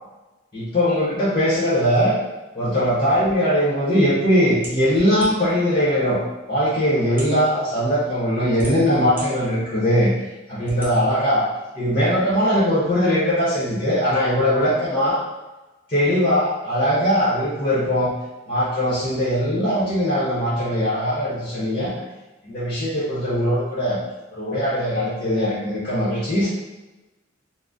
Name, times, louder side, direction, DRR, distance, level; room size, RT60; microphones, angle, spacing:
voice 1, 0.5-2.2 2.5-6.2 6.5-10.1 10.5-11.4 11.7-15.2 15.9-18.1 18.5-21.9 22.4-24.0 24.3-26.5, equal, 30° left, -9 dB, 1.0 m, -20 dB
sound 1, 4.6-5.6 6.4-6.5 7.1-7.4 8.2-9.3 9.8-9.9 10.6-10.9, right 1 dB, 10° right, 0.8 m, -37 dB
3.9 x 2.1 x 2.4 m, 1.1 s
head